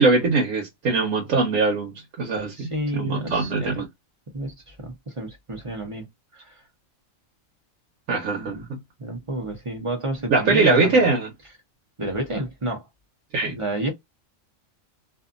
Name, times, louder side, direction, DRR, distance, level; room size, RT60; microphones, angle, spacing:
voice 1, 0.0-3.8 8.1-8.8 10.3-11.3 13.3-13.6, right 3 dB, 80° right, 1.2 m, -22 dB
voice 2, 2.5-3.8 4.3-6.6 8.3-8.7 9.0-11.0 12.0-12.8 13.4-13.9, right 1 dB, 30° right, 0.8 m, -30 dB
2.6 x 2.5 x 2.4 m
omnidirectional pair, 1.4 m